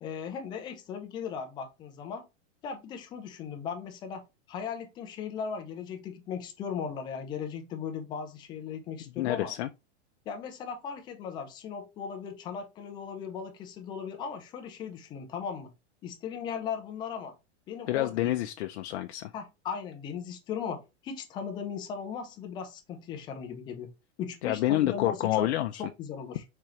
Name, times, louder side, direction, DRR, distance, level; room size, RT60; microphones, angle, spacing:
voice 1, 0.0-2.2 2.6-9.5 10.3-15.7 16.0-17.3 17.7-18.3 19.3-23.9 24.2-25.5 25.8-26.4, left 7 dB, 15° left, 0.3 m, -37 dB
voice 2, 9.2-9.7 17.9-19.3 24.4-25.8, left 14 dB, 65° left, 0.5 m, -28 dB
4.4 x 3.8 x 3.0 m
supercardioid pair, 155°, 35 cm